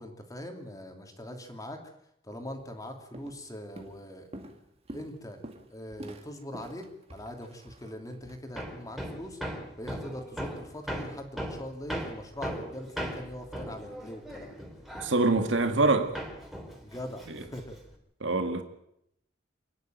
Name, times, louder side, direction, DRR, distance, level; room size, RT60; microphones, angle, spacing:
voice 1, 0.0-1.8 2.2-4.3 4.9-5.4 5.7-9.4 9.8-14.6 16.8-17.8, left 1 dB, 20° left, 2.8 m, -41 dB
Walk footsteps, 2.6-2.8 3.1-3.5 3.8-8.4, right 1 dB, 35° right, 2.2 m, -47 dB
Hammer, 8.6-15.9 16.1-17.9, equal, ahead, 3.3 m, -38 dB
voice 2, 15.0-16.2 18.2-18.6, right 2 dB, 75° right, 1.8 m, -24 dB
27.5 x 10.5 x 9.3 m
head